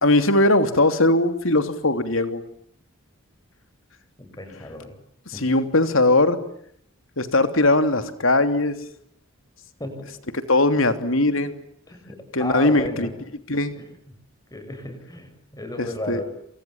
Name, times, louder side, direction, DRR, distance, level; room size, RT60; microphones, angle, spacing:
voice 1, 0.0-2.4 5.3-6.4 7.2-8.8 10.5-11.6 12.3-13.1 13.5-13.8 15.8-16.2, left 2 dB, 65° left, 9 dB, 3.1 m, -20 dB
voice 2, 4.2-5.0 5.3-5.4 9.8-10.1 11.9-13.1 13.7-13.9 14.5-16.2, left 1 dB, 15° left, 7 dB, 7.8 m, -34 dB
28.5 x 28.0 x 7.4 m, 0.68 s
head